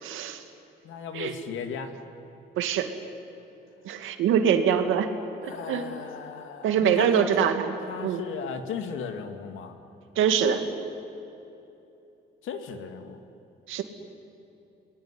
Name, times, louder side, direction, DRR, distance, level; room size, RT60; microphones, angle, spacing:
voice 1, 0.0-0.4 1.1-1.3 2.6-2.9 3.8-5.1 5.4-5.9 6.6-7.7 8.0-8.2 10.2-10.6 13.7-13.8, right 8 dB, 85° right, 6 dB, 2.3 m, -24 dB
voice 2, 0.8-1.9 5.4-7.5 7.9-9.8 12.4-13.2, left 6 dB, 80° left, 6 dB, 2.5 m, -36 dB
28.0 x 21.5 x 9.8 m, 2.9 s
cardioid pair, 90°, 20 cm